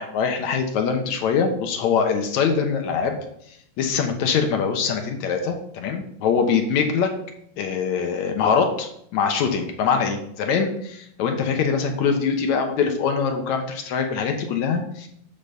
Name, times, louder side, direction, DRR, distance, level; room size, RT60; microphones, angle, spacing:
voice 1, 0.0-3.2 3.5-7.1 7.6-15.1, left 6 dB, 70° left, 4 dB, 2.0 m, -23 dB
10.0 x 3.9 x 6.8 m, 0.70 s
omnidirectional pair, 3.9 m